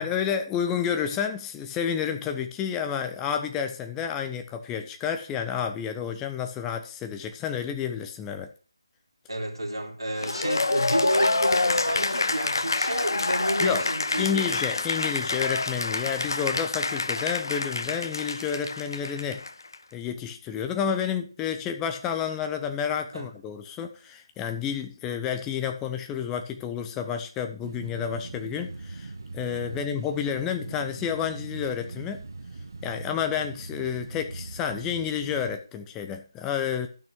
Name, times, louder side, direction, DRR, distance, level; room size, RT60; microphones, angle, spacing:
voice 1, 0.0-8.5 13.6-13.9 14.2-19.4 19.9-32.2 32.8-36.9, left 8 dB, 10° left, 0.6 m, -30 dB
voice 2, 9.3-14.5 23.1-23.3 29.7-29.9, right 1 dB, 70° right, 3.3 m, -30 dB
Cheering / Applause, 10.2-19.8, left 3 dB, 55° left, 0.7 m, -27 dB
sound 1, 27.6-35.6, right 3 dB, 50° right, 1.3 m, -40 dB
11.5 x 6.2 x 4.6 m
figure-of-eight pair, 160°, 3 cm